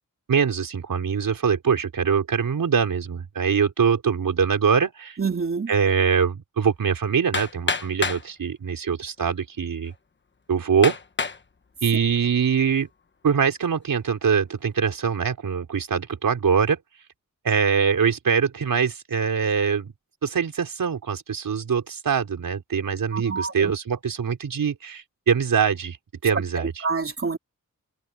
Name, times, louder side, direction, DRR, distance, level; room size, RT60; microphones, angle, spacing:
voice 1, 0.3-5.2 5.7-9.9 10.5-11.0 11.8-12.9 13.2-16.8 17.4-19.9 20.2-26.0 26.2-26.7, right 6 dB, 85° right, 4.2 m, -23 dB
voice 2, 5.2-5.7 23.1-23.7 26.6-27.4, right 4 dB, 40° right, 3.1 m, -27 dB
Hammer, 7.3-8.3 9.2-9.3 9.9-10.0 10.8-11.4 12.0-12.4, left 4 dB, 35° left, 1.2 m, -27 dB
open air
wide cardioid pair, 130°, 33 cm